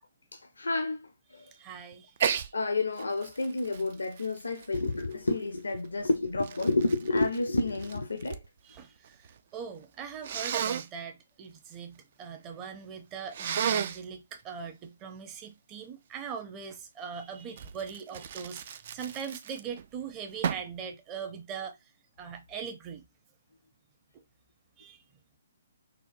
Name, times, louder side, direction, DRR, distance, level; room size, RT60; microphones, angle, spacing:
voice 1, 0.3-1.4 2.5-8.4, left 2 dB, 80° left, 0.6 m, -30 dB
voice 2, 1.5-2.1 8.6-9.2 9.5-21.8 22.2-23.0 24.8-25.0, right 7 dB, 25° right, 0.7 m, -41 dB
Sneeze, 2.2-2.5 3.0-5.3 6.0-8.5 8.7-9.4 10.2-10.9 13.3-14.0 17.6-19.8 20.4-20.8, right 8 dB, 50° right, 0.3 m, -33 dB
4.3 x 2.3 x 2.6 m
figure-of-eight pair, 135°, 0 cm